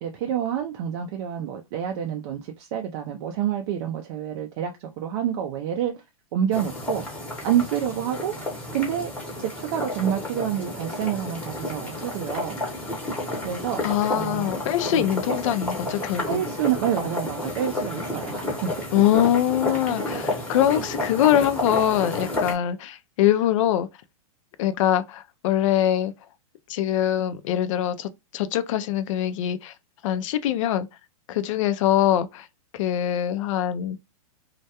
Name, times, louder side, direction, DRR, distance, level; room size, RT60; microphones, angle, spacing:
voice 1, 0.0-6.0 6.3-7.0 7.4-8.3 8.7-9.1 9.4-12.8 13.4-13.8 14.1-14.5 14.9-15.1 16.3-18.7 19.7-19.8, right 9 dB, 45° right, 0.4 m, -28 dB
sound 1, 6.5-22.5, left 1 dB, 5° left, 0.8 m, -31 dB
voice 2, 13.8-16.4 18.9-23.9 24.6-26.1 26.7-29.7 30.0-30.9 31.3-32.5 32.7-34.0, left 11 dB, 60° left, 0.4 m, -23 dB
2.3 x 2.1 x 2.7 m
hypercardioid pair, 145°, 19 cm